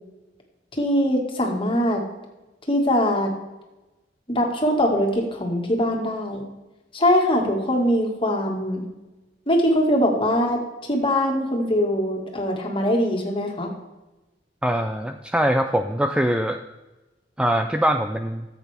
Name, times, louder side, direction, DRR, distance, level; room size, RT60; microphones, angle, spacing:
voice 1, 0.8-2.0 2.7-3.3 4.3-6.4 6.9-8.8 9.5-10.6 10.9-13.7, equal, 30° left, 1 dB, 1.9 m, -22 dB
voice 2, 14.6-16.6 17.4-18.5, equal, 5° right, 6 dB, 0.4 m, -22 dB
13.5 x 8.0 x 3.5 m, 1.1 s
head